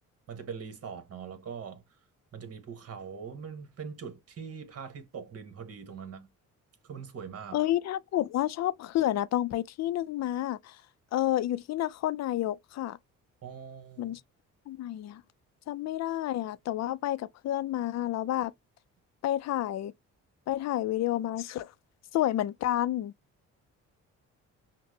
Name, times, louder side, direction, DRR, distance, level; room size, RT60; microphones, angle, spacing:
voice 1, 0.3-1.8 2.3-6.3 6.8-7.6 13.4-14.2, right 6 dB, 55° right, 1.4 m, -42 dB
voice 2, 7.5-10.8 11.1-13.0 14.0-14.2 14.7-15.2 15.7-18.5 19.2-19.9 20.5-21.7 22.1-23.1, left 13 dB, 60° left, 0.5 m, -30 dB
5.8 x 2.2 x 2.8 m
cardioid pair, 90°, 30 cm